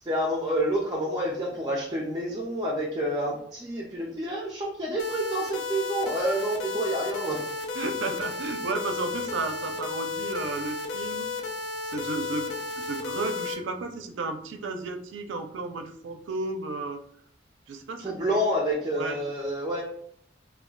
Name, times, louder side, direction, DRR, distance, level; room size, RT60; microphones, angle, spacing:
voice 1, 0.0-7.4 18.0-19.8, equal, 20° right, -2 dB, 0.5 m, -28 dB
sound 1, 5.0-13.5, left 4 dB, 70° left, 0.5 m, -33 dB
voice 2, 7.8-11.3 11.9-17.0 17.7-18.2 19.0-19.2, right 3 dB, 90° right, 5 dB, 0.4 m, -33 dB
2.2 x 2.1 x 3.7 m, 0.67 s
head